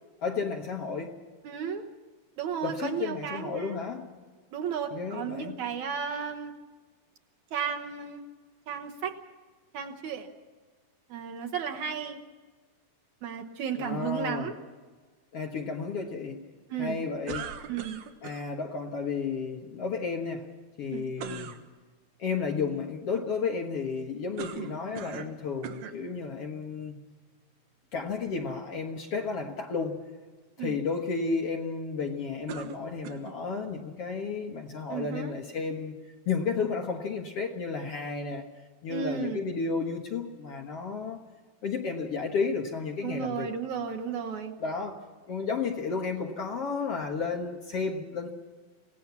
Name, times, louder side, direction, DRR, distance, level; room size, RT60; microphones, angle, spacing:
voice 1, 0.2-1.2 2.6-4.1 4.9-5.6 13.8-14.5 15.3-16.5 16.8-17.6 18.2-20.5 20.8-21.6 22.2-27.0 27.9-30.0 30.6-36.0 36.3-38.5 38.8-41.2 41.6-43.5 44.6-45.0 45.3-48.3, left 5 dB, 55° left, 1.9 m, -32 dB
voice 2, 1.4-1.9 2.4-3.8 4.5-6.5 7.5-8.2 8.7-9.2 9.7-10.3 11.1-12.2 13.2-14.5 16.7-17.0 17.7-18.0 20.9-21.0 30.6-30.7 34.9-35.3 38.9-39.4 43.0-44.5, right 7 dB, 65° right, 2.2 m, -34 dB
sound 1, 17.3-18.5 21.2-21.6 24.4-25.4 25.6-26.0 26.8-26.9 32.5-33.4, right 7 dB, 90° right, 3.2 m, -39 dB
27.0 x 17.5 x 6.0 m
omnidirectional pair, 4.1 m